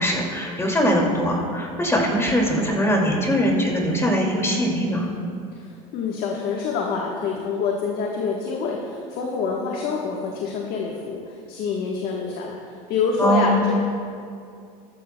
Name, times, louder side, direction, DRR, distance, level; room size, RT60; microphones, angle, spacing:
voice 1, 0.0-5.1 13.2-13.6, equal, 15° left, -1 dB, 2.3 m, -21 dB
voice 2, 5.9-11.2 11.5-12.5 12.9-13.8, left 5 dB, 60° left, -1 dB, 1.2 m, -26 dB
14.5 x 13.0 x 2.2 m, 2.3 s
supercardioid pair, 95°, 18 cm